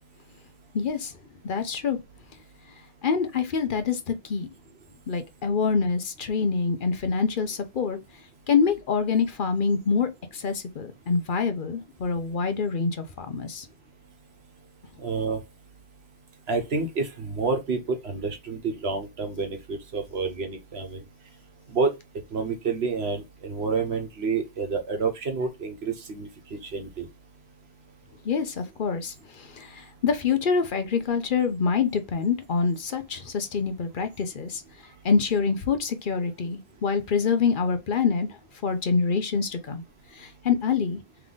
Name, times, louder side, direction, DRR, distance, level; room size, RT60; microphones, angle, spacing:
voice 1, 0.7-1.1 1.4-2.0 3.0-4.5 5.1-8.0 8.5-13.7 28.2-34.6 35.0-38.3 38.6-39.8 40.1-41.0, left 5 dB, 55° left, 0.9 m, -26 dB
voice 2, 15.0-15.4 16.5-21.4 21.7-22.0 22.3-27.1 34.9-35.0, right 4 dB, 85° right, 1.4 m, -29 dB
3.6 x 3.4 x 3.8 m
omnidirectional pair, 1.0 m